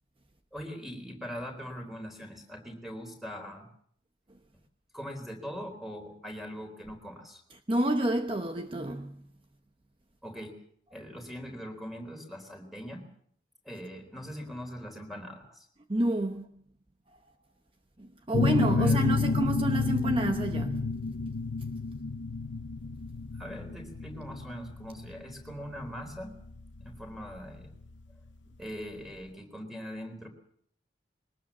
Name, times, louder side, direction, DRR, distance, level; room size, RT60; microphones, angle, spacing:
voice 1, 0.5-3.7 4.9-7.4 10.2-10.5 10.9-13.0 13.6-15.7 18.5-19.4 23.3-26.3 26.8-27.7 28.6-30.3, equal, ahead, 3.8 m, -41 dB
voice 2, 7.7-9.3 15.9-16.5 18.0-21.0, right 1 dB, 30° right, 0.9 m, -29 dB
sound 1, 18.3-27.7, left 4 dB, 90° left, 0.8 m, -30 dB
22.0 x 19.5 x 7.3 m
head